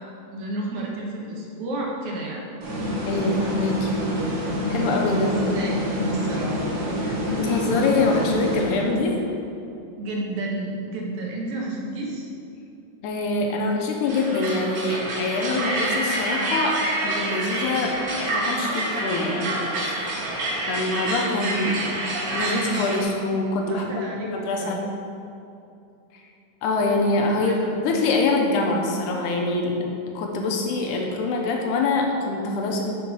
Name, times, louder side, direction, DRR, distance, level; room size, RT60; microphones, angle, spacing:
voice 1, 0.0-2.4 5.1-6.6 10.0-12.3 23.7-24.3 24.6-24.8 27.3-27.7, right 2 dB, 75° right, -2 dB, 2.3 m, -31 dB
sound 1, 2.6-9.2, equal, 90° right, 3.0 m, -27 dB
voice 2, 3.1-3.9 4.7-5.3 7.0-9.2 13.0-20.2 20.7-21.9 22.3-23.9 24.2-24.8 26.6-27.5 27.8-29.8 30.1-32.9, left 3 dB, 90° left, 1 dB, 2.4 m, -24 dB
sound 2, 14.1-23.0, right 2 dB, 60° right, 1.9 m, -27 dB
6.2 x 5.6 x 5.5 m, 2.7 s
omnidirectional pair, 3.5 m